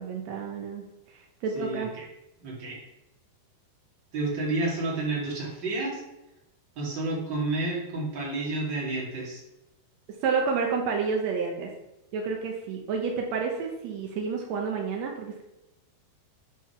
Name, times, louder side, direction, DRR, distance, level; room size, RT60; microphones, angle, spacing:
voice 1, 0.0-1.9 10.2-11.7 12.1-15.4, right 5 dB, 85° right, 1 dB, 1.5 m, -30 dB
voice 2, 1.5-2.0 2.4-2.8 4.1-6.0 6.8-9.4, right 2 dB, 35° right, -4 dB, 2.4 m, -30 dB
7.9 x 4.7 x 5.6 m, 0.93 s
omnidirectional pair, 4.5 m